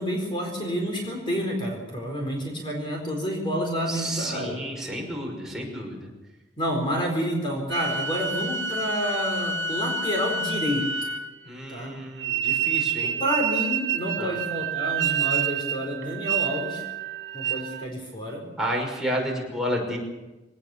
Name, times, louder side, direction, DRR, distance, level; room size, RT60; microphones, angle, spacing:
voice 1, 0.0-4.6 6.6-10.9 11.7-11.9 13.0-16.8 17.3-18.4, equal, 30° left, 1 dB, 4.2 m, -29 dB
voice 2, 3.9-6.1 11.5-13.2 14.2-14.4 18.6-20.0, equal, 5° right, -2 dB, 5.8 m, -31 dB
sound 1, 7.7-11.5 12.2-17.9, right 6 dB, 85° right, 1.1 m, -28 dB
23.5 x 18.5 x 7.0 m, 1.1 s
head